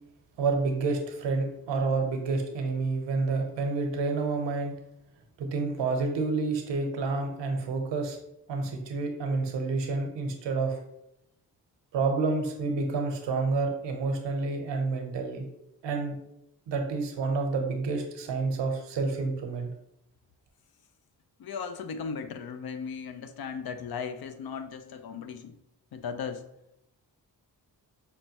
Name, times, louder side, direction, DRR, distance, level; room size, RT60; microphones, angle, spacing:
voice 1, 0.4-4.7 5.4-8.2 8.5-10.8 11.9-15.5 15.8-16.2 16.7-19.7, right 3 dB, 80° right, 4 dB, 0.8 m, -29 dB
voice 2, 21.4-25.6 25.9-26.4, left 6 dB, 60° left, 9 dB, 0.6 m, -37 dB
5.7 x 2.2 x 2.8 m, 0.81 s
supercardioid pair, 45°, 43 cm